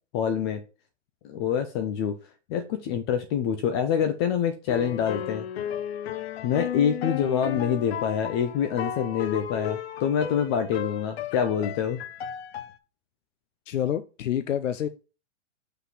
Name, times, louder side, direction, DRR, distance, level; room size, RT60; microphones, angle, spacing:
voice 1, 0.1-0.6 1.2-2.2 2.5-5.5 6.4-12.0, left 8 dB, 20° left, 0.5 m, -26 dB
sound 1, 4.7-12.8, left 9 dB, 55° left, 0.9 m, -34 dB
voice 2, 13.7-14.9, left 10 dB, 85° left, 0.7 m, -27 dB
5.8 x 4.0 x 6.1 m
hypercardioid pair, 145°, 37 cm